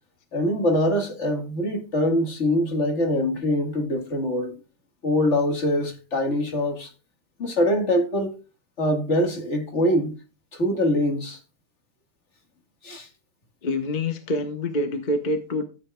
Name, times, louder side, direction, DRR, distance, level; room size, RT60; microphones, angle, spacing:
voice 1, 0.3-4.6 5.0-6.9 7.4-8.4 8.8-10.1 10.5-11.4 12.8-13.1, left 1 dB, 55° left, 2.0 m, -23 dB
voice 2, 13.6-15.6, left 1 dB, 35° left, 1.2 m, -26 dB
13.5 x 7.8 x 2.3 m
omnidirectional pair, 1.4 m